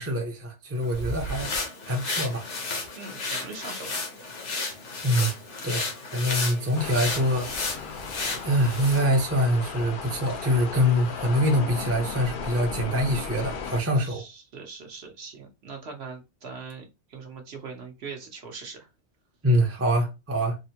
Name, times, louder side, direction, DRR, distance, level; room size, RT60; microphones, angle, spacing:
voice 1, 0.0-2.5 5.0-5.3 5.6-7.9 8.4-14.2 19.4-20.6, equal, 15° right, 0.5 m, -25 dB
sound 1, 0.8-9.1, left 3 dB, 75° left, 1.2 m, -33 dB
voice 2, 3.0-4.0 14.0-18.9, right 4 dB, 65° right, 1.1 m, -41 dB
sound 2, 6.8-13.8, left 6 dB, 60° left, 0.6 m, -36 dB
3.6 x 2.1 x 2.7 m
omnidirectional pair, 1.2 m